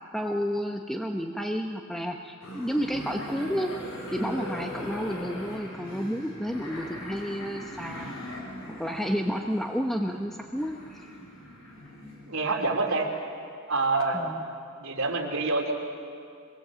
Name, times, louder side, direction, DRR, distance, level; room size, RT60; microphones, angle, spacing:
voice 1, 0.1-3.7 4.1-8.2 8.8-11.1 14.1-14.4, equal, ahead, 2 dB, 0.9 m, -31 dB
sound 1, 2.4-12.4, equal, 75° left, 6.3 m, -40 dB
voice 2, 12.3-13.1 13.7-14.2 14.8-15.7, right 3 dB, 80° right, 1 dB, 3.4 m, -26 dB
26.0 x 22.0 x 7.6 m, 2.4 s
head